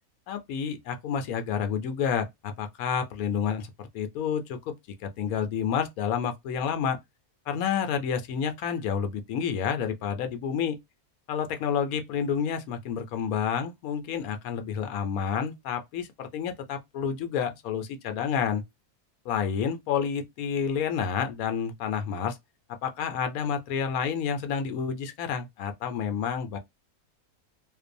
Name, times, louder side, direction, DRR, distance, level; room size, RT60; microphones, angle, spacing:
voice 1, 0.3-4.8 5.0-7.0 7.5-10.8 11.3-18.6 19.3-22.4 22.8-26.6, left 7 dB, 75° left, 1.0 m, -29 dB
2.6 x 2.2 x 2.5 m
omnidirectional pair, 1.6 m